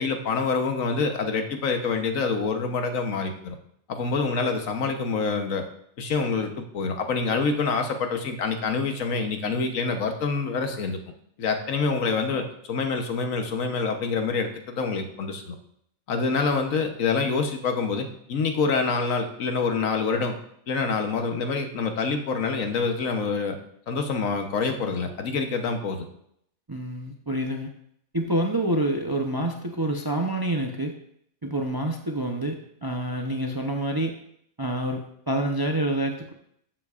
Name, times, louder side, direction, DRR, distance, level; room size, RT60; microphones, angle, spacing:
voice 1, 0.0-3.6 3.9-5.7 6.0-11.0 11.4-15.6 16.1-20.4 20.7-23.6 23.9-26.0, left 4 dB, 75° left, 5 dB, 1.4 m, -26 dB
voice 2, 26.7-27.7 28.1-30.9 31.4-34.1 34.6-36.3, right 1 dB, 25° right, 3 dB, 0.5 m, -27 dB
13.5 x 7.6 x 2.5 m, 0.70 s
omnidirectional pair, 1.4 m